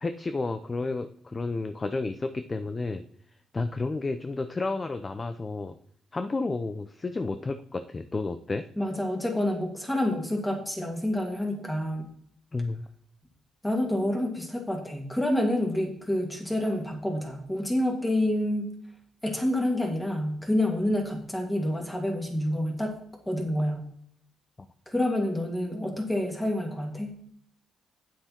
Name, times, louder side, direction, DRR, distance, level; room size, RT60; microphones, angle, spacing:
voice 1, 0.0-3.0 3.5-5.8 6.1-8.7 12.5-12.9 24.6-24.7, left 3 dB, 25° left, 10 dB, 0.6 m, -31 dB
voice 2, 8.8-12.1 13.6-18.7 19.2-22.9 23.3-23.9 24.9-27.1, left 1 dB, 10° left, 2 dB, 2.6 m, -28 dB
9.1 x 7.6 x 4.4 m, 0.64 s
cardioid pair, 90°, 0 cm